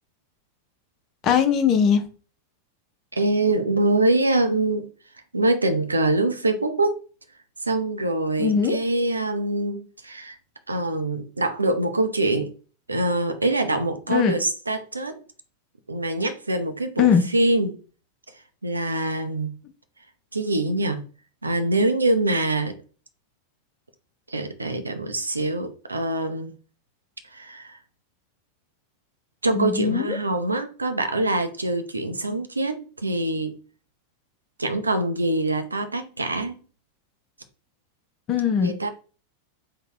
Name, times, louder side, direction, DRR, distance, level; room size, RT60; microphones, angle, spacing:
voice 1, 1.2-2.0 8.4-8.8 14.1-14.4 17.0-17.2 29.5-30.2 38.3-38.7, left 7 dB, 35° left, 0.7 m, -20 dB
voice 2, 3.1-4.9 5.3-7.0 7.6-10.4 10.7-12.5 12.9-15.2 15.9-17.8 18.6-19.5 20.3-21.0 21.4-22.8 24.3-26.5 27.3-27.8 29.4-33.6 34.6-36.6 38.6-38.9, right 2 dB, 80° right, 0.6 m, -24 dB
3.8 x 2.3 x 4.5 m
figure-of-eight pair, 90°, 0 cm